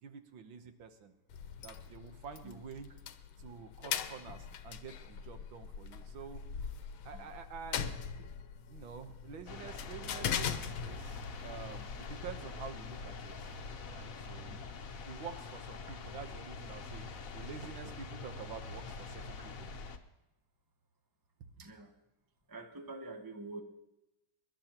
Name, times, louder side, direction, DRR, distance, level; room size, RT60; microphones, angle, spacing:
voice 1, 0.0-1.1 1.6-2.9 3.4-6.4 7.1-7.9 8.7-13.5 13.9-14.5 15.1-17.1 17.3-19.7, right 6 dB, 75° right, 7 dB, 1.8 m, -48 dB
sound 1, 1.3-13.7, left 7 dB, 80° left, 1.6 m, -41 dB
sound 2, 9.5-20.0, left 4 dB, 55° left, 1.1 m, -45 dB
voice 2, 21.6-21.9 22.5-23.6, right 2 dB, 20° right, 4 dB, 0.6 m, -46 dB
24.5 x 11.5 x 3.0 m, 0.95 s
omnidirectional pair, 2.2 m